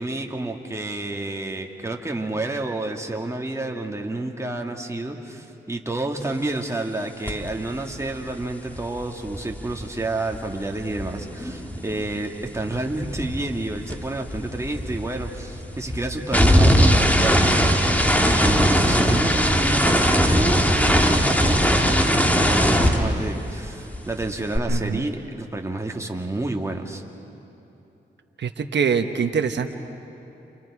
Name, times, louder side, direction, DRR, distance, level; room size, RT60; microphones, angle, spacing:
voice 1, 0.0-17.9 18.2-27.0, right 2 dB, 15° right, 1 dB, 2.1 m, -29 dB
sound 1, 7.3-7.5 7.7-12.1 12.4-23.7 23.9-24.6, equal, 10° left, 2.4 m, -20 dB
voice 2, 24.7-25.1 28.4-29.7, right 6 dB, 70° right, 6 dB, 1.2 m, -24 dB
29.0 x 28.0 x 4.9 m, 3.0 s
cardioid pair, 55°, 19 cm